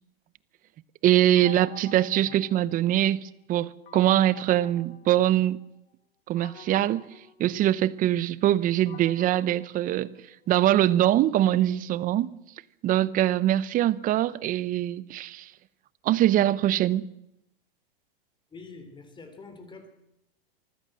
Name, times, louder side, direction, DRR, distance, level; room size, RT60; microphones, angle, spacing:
voice 1, 1.0-5.6 6.3-7.0 7.4-10.1 10.5-12.3 12.8-15.5 16.0-17.1, right 13 dB, 30° right, 0.9 m, -23 dB
sound 1, 1.4-3.2 3.9-5.7 6.4-10.6, left 7 dB, 85° left, 1.9 m, -49 dB
voice 2, 18.5-19.9, left 3 dB, 15° left, 3.4 m, -46 dB
25.0 x 15.0 x 7.7 m
hypercardioid pair, 130°, 29 cm